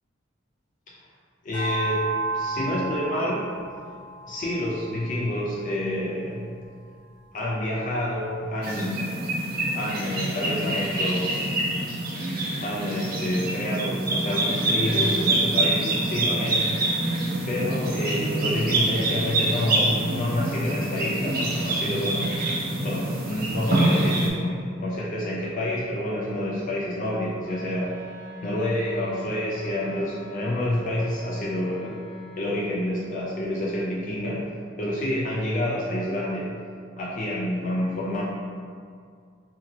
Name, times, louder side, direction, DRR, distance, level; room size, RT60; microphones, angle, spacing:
voice 1, 1.4-2.1 2.3-3.5 4.3-6.6 7.3-9.2 9.7-11.5 12.6-17.0 17.5-22.3 22.8-28.0 28.4-32.0 32.4-34.4 34.8-36.5 37.0-38.2, left 1 dB, 45° left, -6 dB, 0.4 m, -28 dB
sound 1, 1.5-6.1, right 3 dB, 25° left, 1.0 m, -33 dB
sound 2, 8.6-24.3, right 2 dB, 50° right, 0.5 m, -26 dB
Wind instrument woodwind instrument, 27.4-32.6, left 1 dB, 85° right, 1.1 m, -45 dB
2.8 x 2.7 x 2.5 m, 2.2 s
head